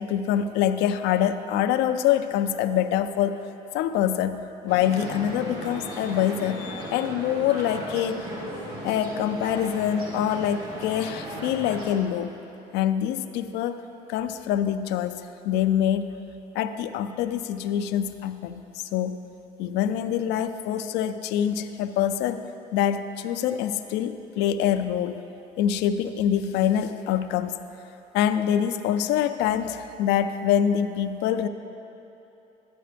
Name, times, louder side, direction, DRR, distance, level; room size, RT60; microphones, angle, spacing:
voice 1, 0.0-3.4 3.7-8.2 8.8-12.4 12.7-13.8 14.1-16.1 16.5-19.2 19.6-22.4 22.7-25.2 25.6-27.6 28.1-31.5, left 10 dB, 90° left, 10 dB, 0.4 m, -25 dB
sound 1, 4.7-11.9, equal, 70° right, 2.0 m, -36 dB
12.0 x 8.8 x 3.4 m, 2.9 s
cardioid pair, 110°, 17 cm